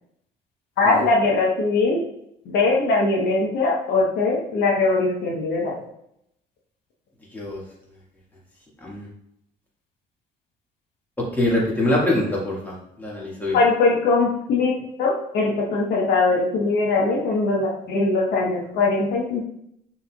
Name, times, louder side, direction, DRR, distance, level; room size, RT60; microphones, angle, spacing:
voice 1, 0.8-2.0 2.4-5.8 13.5-19.4, left 3 dB, 75° left, -1 dB, 1.1 m, -21 dB
voice 2, 7.3-7.6 8.8-9.0 11.3-13.6, left 1 dB, 10° left, -5 dB, 1.7 m, -24 dB
6.3 x 3.5 x 2.3 m, 0.76 s
cardioid pair, 110°, 17 cm